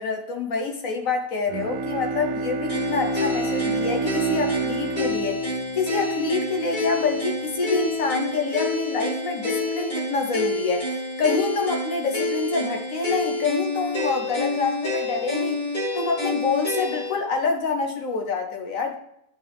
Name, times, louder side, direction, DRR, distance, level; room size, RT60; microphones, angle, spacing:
voice 1, 0.0-15.6 15.9-18.9, left 4 dB, 65° left, 4 dB, 1.5 m, -27 dB
Bowed string instrument, 1.5-6.4, right 3 dB, 65° right, 1.3 m, -29 dB
sound 1, 2.7-17.1, left 2 dB, 30° left, 2.5 m, -28 dB
12.0 x 5.4 x 3.5 m, 0.77 s
omnidirectional pair, 1.5 m